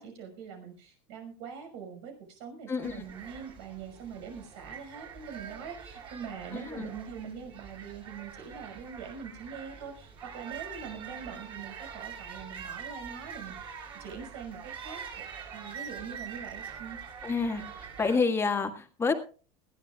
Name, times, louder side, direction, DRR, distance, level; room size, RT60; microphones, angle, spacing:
voice 1, 0.0-15.2 15.5-17.0, right 6 dB, 80° right, 5 dB, 5.7 m, -43 dB
voice 2, 2.7-3.0 6.5-6.9 17.2-17.6 18.0-19.1, left 4 dB, 15° left, 5 dB, 1.7 m, -28 dB
sound 1, 2.8-18.1, right 7 dB, 35° right, 6.7 m, -44 dB
20.5 x 15.5 x 2.4 m, 0.37 s
supercardioid pair, 145°, 15 cm